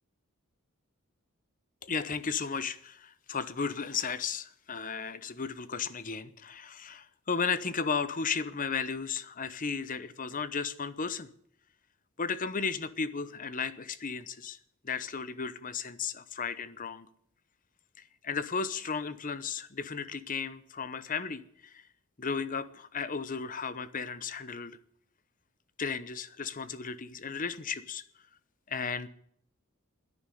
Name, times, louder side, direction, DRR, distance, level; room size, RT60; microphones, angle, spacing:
voice 1, 1.8-11.3 12.2-14.6 14.8-17.1 18.2-21.8 22.2-24.8 25.8-28.0 28.7-29.1, left 5 dB, 40° left, 14 dB, 0.9 m, -34 dB
11.0 x 10.5 x 9.2 m, 0.67 s
head